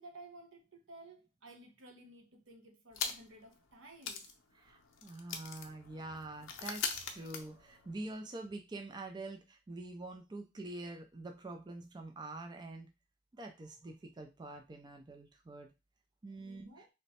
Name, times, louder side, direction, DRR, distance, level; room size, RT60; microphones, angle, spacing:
voice 1, 0.0-4.3 16.4-16.9, right 2 dB, 85° right, 0.9 m, -55 dB
sound 1, 2.9-3.5 3.7-3.8 4.0-8.1, left 6 dB, 80° left, 0.6 m, -42 dB
voice 2, 4.5-12.9 13.3-15.7 16.2-16.8, right 2 dB, 20° right, 0.4 m, -46 dB
3.0 x 2.1 x 4.1 m
head